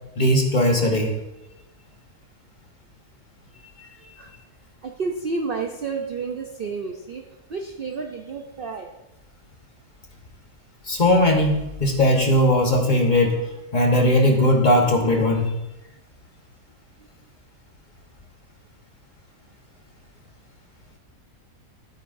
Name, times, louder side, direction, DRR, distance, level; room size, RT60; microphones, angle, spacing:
voice 1, 0.2-1.1 10.9-13.4 13.7-15.5, left 1 dB, 35° left, 1 dB, 1.1 m, -18 dB
voice 2, 4.8-7.2 7.5-8.9, right 4 dB, 55° right, 2 dB, 0.6 m, -30 dB
13.5 x 8.6 x 2.6 m, 0.97 s
omnidirectional pair, 1.6 m